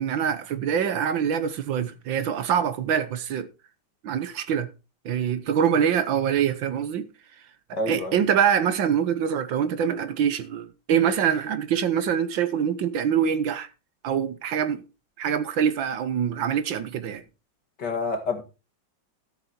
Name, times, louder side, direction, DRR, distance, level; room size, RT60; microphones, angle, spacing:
voice 1, 0.0-3.5 4.0-4.7 5.0-7.1 7.7-13.7 14.0-14.8 15.2-17.2, right 8 dB, 75° right, 1.7 m, -24 dB
voice 2, 7.7-8.2 17.8-18.4, left 3 dB, 60° left, 2.5 m, -28 dB
14.0 x 6.9 x 4.4 m
omnidirectional pair, 2.1 m